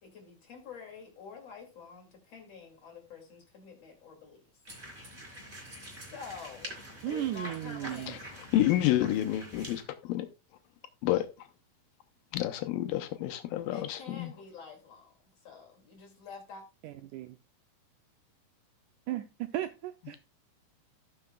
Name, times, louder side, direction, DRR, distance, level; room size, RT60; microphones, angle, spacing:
voice 1, 0.0-4.4 5.9-6.8 7.1-8.3 13.7-15.1 15.4-16.6, left 5 dB, 45° left, 3.2 m, -47 dB
sound 1, 4.6-9.8, right 1 dB, 20° right, 3.2 m, -46 dB
voice 2, 7.0-8.1 16.8-17.4 19.1-20.2, right 13 dB, 85° right, 1.8 m, -35 dB
voice 3, 8.5-10.3 11.0-11.5 12.3-14.3, left 13 dB, 80° left, 2.4 m, -29 dB
17.5 x 5.9 x 2.3 m
omnidirectional pair, 4.1 m